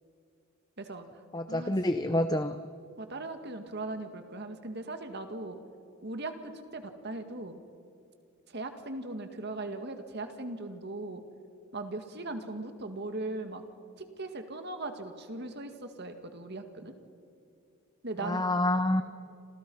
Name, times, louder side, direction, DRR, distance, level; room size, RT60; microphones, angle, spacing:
voice 1, 0.8-1.7 2.1-2.3 3.0-5.6 6.0-7.6 8.5-11.2 11.7-13.6 14.2-16.9 18.0-18.4, right 2 dB, 50° right, 7 dB, 2.1 m, -39 dB
voice 2, 1.3-2.6 18.2-19.0, left 1 dB, 20° left, 10 dB, 0.7 m, -28 dB
29.5 x 26.5 x 5.6 m, 2.5 s
head